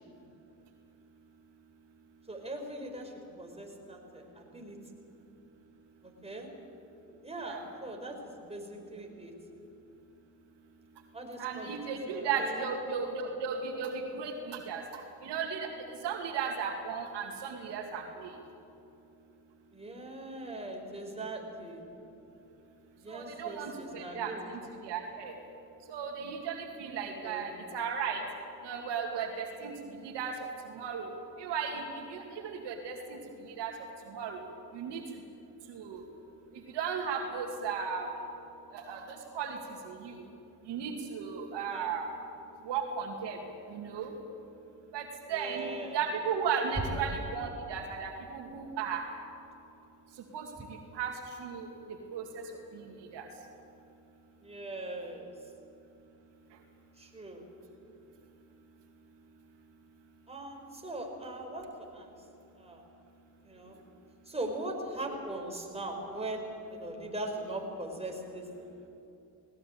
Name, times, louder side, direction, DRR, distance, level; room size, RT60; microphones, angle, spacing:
voice 1, 2.3-4.8 6.0-6.5 7.2-9.3 11.1-11.8 12.1-12.7 19.7-21.8 23.0-24.7 27.2-27.5 41.7-41.9 45.3-46.0 54.4-55.3 57.0-57.5 60.3-61.7 61.9-62.1 62.6-62.8 63.4-63.8 64.3-68.9, right 1 dB, 15° right, 1 dB, 5.7 m, -40 dB
voice 2, 11.4-15.7 16.0-18.3 23.1-24.6 24.8-25.3 25.9-28.2 28.6-29.7 30.0-30.3 30.7-31.1 31.4-31.8 32.1-33.2 33.6-33.7 34.1-34.4 34.7-35.0 35.7-36.0 36.7-38.1 38.7-39.6 39.9-40.1 40.7-42.1 42.7-43.4 43.7-44.1 44.9-49.0 50.3-50.5 50.9-51.1 51.4-51.7 52.1-52.4 53.1-53.3, right 6 dB, 75° right, 2 dB, 2.5 m, -35 dB
20.0 x 19.0 x 8.8 m, 2.8 s
supercardioid pair, 65°, 42 cm